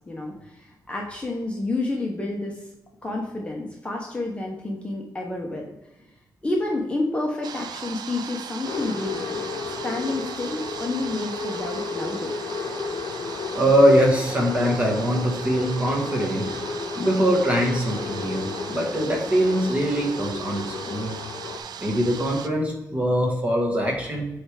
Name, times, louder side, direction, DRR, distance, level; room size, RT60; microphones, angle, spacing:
voice 1, 0.1-2.6 3.0-5.7 6.4-9.5 9.8-12.4, left 2 dB, 15° left, -1 dB, 0.8 m, -29 dB
sound 1, 7.4-22.5, right 7 dB, 80° right, 0.4 m, -38 dB
sound 2, 8.6-21.6, left 4 dB, 80° left, 0.7 m, -33 dB
voice 2, 13.3-16.5 16.9-21.2 21.8-24.3, equal, 20° right, 0 dB, 1.3 m, -22 dB
7.8 x 3.3 x 4.9 m, 0.96 s
wide cardioid pair, 180°, 7 cm